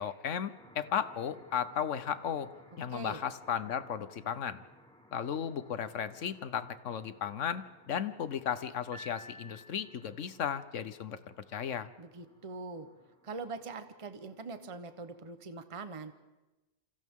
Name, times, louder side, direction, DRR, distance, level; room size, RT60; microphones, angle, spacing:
voice 1, 0.0-2.5 2.8-4.6 5.1-11.2 11.5-11.9, left 8 dB, 85° left, 13 dB, 1.3 m, -35 dB
sound 1, 0.5-15.3, equal, 5° left, 2.6 m, -61 dB
voice 2, 2.9-3.2 12.0-12.9 13.2-16.1, right 4 dB, 30° right, 9 dB, 1.0 m, -42 dB
Piano, 8.9-10.2, left 1 dB, 70° right, 6.8 m, -50 dB
28.0 x 26.5 x 3.7 m, 1.1 s
omnidirectional pair, 1.2 m